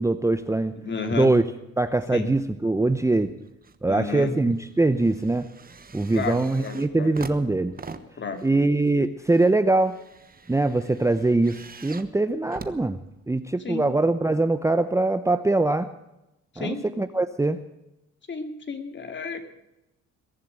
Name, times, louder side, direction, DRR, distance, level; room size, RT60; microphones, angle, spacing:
voice 1, 0.0-0.7 1.1-1.4 1.8-3.3 3.8-5.5 5.9-7.7 8.4-10.0 10.5-13.0 13.3-15.9 16.6-17.6, right 2 dB, 10° right, 11 dB, 0.7 m, -22 dB
voice 2, 0.8-1.4 2.1-2.3 3.9-4.4 6.1-7.1 8.2-8.4 13.6-13.9 16.5-16.8 18.3-19.4, left 4 dB, 40° left, 6 dB, 2.5 m, -32 dB
sound 1, 3.1-3.8 4.2-13.6 14.3-14.4, right 4 dB, 30° right, 1.2 m, -44 dB
22.0 x 7.5 x 8.9 m, 0.91 s
cardioid pair, 90°, 30 cm